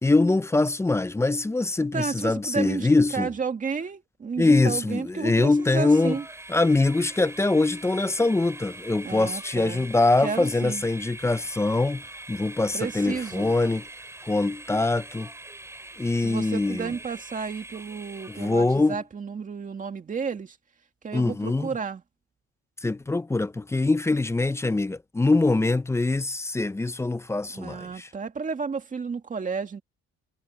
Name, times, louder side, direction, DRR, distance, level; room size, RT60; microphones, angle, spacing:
voice 1, 0.0-3.3 4.4-6.2 6.5-13.8 14.2-15.3 16.0-16.9 18.3-19.0 21.1-21.7 22.8-28.1, left 2 dB, 10° left, 0.5 m, -23 dB
voice 2, 1.9-6.2 9.0-9.9 10.2-10.8 12.7-13.5 16.2-20.6 21.0-22.0 27.5-29.8, right 5 dB, 25° right, 2.1 m, -32 dB
Train, 5.4-18.9, right 2 dB, 10° right, 3.1 m, -43 dB
cardioid pair, 160°, 30 cm